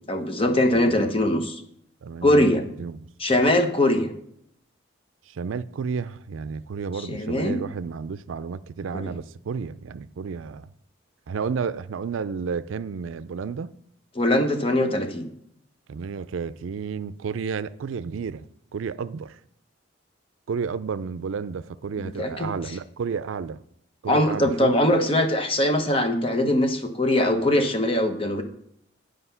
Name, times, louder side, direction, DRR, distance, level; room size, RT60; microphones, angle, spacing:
voice 1, 0.1-1.6 2.2-2.6 3.2-4.1 7.1-7.6 8.9-9.0 14.1-15.3 22.0-22.5 24.1-28.4, left 1 dB, 30° left, 0.9 m, -22 dB
voice 2, 0.7-1.3 2.0-2.5 2.8-3.4 5.3-10.7 11.3-13.7 15.9-18.4 18.7-19.4 20.5-23.6 24.0-24.8, right 5 dB, 80° right, 0.4 m, -31 dB
10.0 x 5.1 x 5.6 m
head